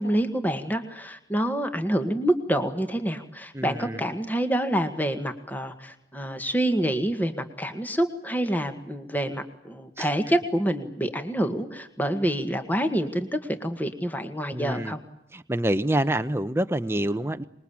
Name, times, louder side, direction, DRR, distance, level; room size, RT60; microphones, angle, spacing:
voice 1, 0.0-15.0, right 1 dB, 10° left, 8 dB, 1.8 m, -27 dB
voice 2, 3.5-4.0 10.0-10.1 14.5-14.9 15.3-17.4, right 1 dB, 15° right, 11 dB, 0.9 m, -27 dB
26.0 x 21.5 x 8.7 m, 0.82 s
head